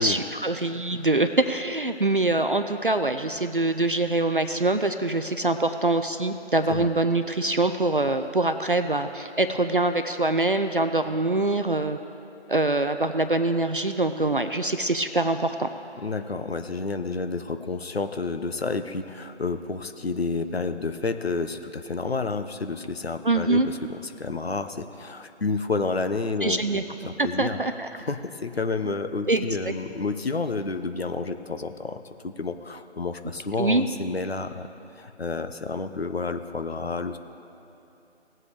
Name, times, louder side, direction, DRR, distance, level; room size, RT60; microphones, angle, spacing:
voice 1, 0.0-12.0 12.5-15.7 23.2-23.7 26.4-26.8 27.2-27.9 29.3-29.7 33.6-33.8, right 2 dB, 50° right, 8 dB, 0.5 m, -24 dB
voice 2, 16.0-27.6 27.9-34.7 35.0-37.2, left 3 dB, 60° left, 8 dB, 0.8 m, -30 dB
18.0 x 7.6 x 3.4 m, 3.0 s
figure-of-eight pair, 160°, 34 cm